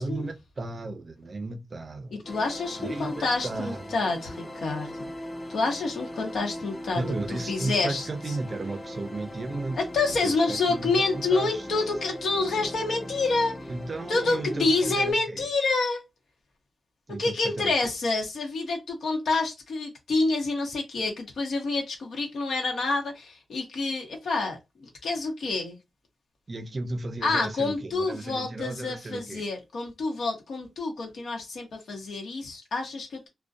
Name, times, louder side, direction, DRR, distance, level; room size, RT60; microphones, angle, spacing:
voice 1, 0.0-2.2 2.8-3.9 6.9-9.8 10.2-11.6 13.7-15.5 17.1-17.7 26.5-29.5, right 2 dB, 35° right, 0.4 m, -34 dB
sound 1, 2.2-15.1, left 1 dB, 20° left, 0.5 m, -40 dB
voice 2, 2.3-5.1 5.5-8.3 9.7-13.5 14.1-16.0 17.2-25.8 27.2-33.3, left 3 dB, 70° left, 0.9 m, -28 dB
2.4 x 2.1 x 2.4 m
wide cardioid pair, 130°, 0 cm